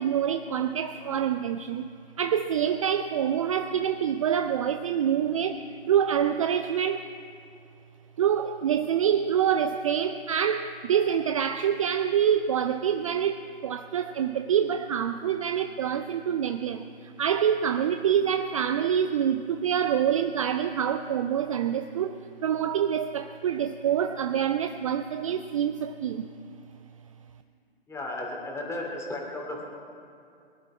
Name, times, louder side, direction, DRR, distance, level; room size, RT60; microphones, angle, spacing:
voice 1, 0.0-1.9 2.2-5.6 5.9-7.1 8.2-22.2 22.4-26.3, right 8 dB, 35° right, 9 dB, 0.5 m, -26 dB
voice 2, 27.9-29.6, left 2 dB, 10° left, -1 dB, 2.7 m, -34 dB
23.5 x 11.0 x 4.9 m, 2.5 s
figure-of-eight pair, 125°, 31 cm